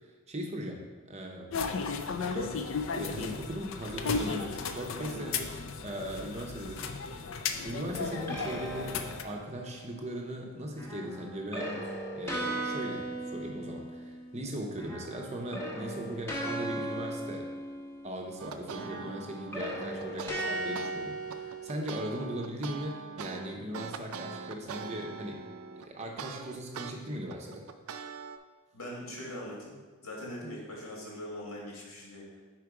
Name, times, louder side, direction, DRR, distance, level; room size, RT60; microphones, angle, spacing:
voice 1, 0.3-1.5 2.2-2.6 2.9-7.0 7.6-17.5 18.0-25.4 25.7-27.7, right 1 dB, 30° right, 1 dB, 0.6 m, -39 dB
sound 1, 1.5-9.2, left 5 dB, 60° left, 0.4 m, -35 dB
sound 2, 7.9-9.8 10.8-14.5 14.7-18.3 18.8-22.2, right 1 dB, 10° left, 0.8 m, -38 dB
sound 3, 18.4-20.9 21.3-26.9 27.3-28.4, right 6 dB, 75° right, 0.4 m, -42 dB
voice 2, 28.7-29.7 30.0-32.4, left 1 dB, 80° left, -3 dB, 1.8 m, -41 dB
4.9 x 4.5 x 4.7 m, 1.4 s
head